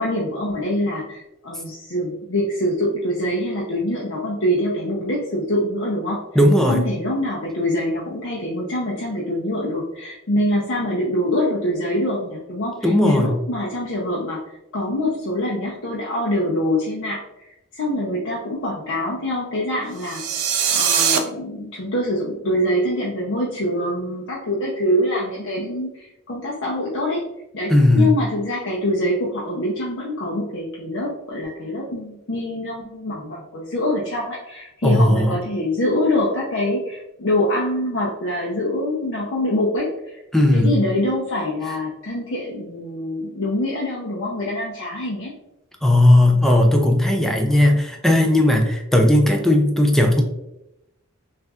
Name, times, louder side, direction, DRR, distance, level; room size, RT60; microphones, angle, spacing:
voice 1, 0.0-6.2 6.7-14.4 14.7-17.2 17.7-20.2 20.7-27.2 27.5-40.2 40.5-45.3, left 1 dB, 55° left, -5 dB, 0.7 m, -24 dB
voice 2, 6.3-6.8 12.8-13.3 27.7-28.1 34.8-35.3 40.3-40.7 45.8-50.2, left 1 dB, ahead, 2 dB, 0.4 m, -16 dB
sound 1, 20.0-21.2, right 8 dB, 85° right, 0.5 m, -21 dB
5.9 x 2.5 x 2.4 m, 0.88 s
head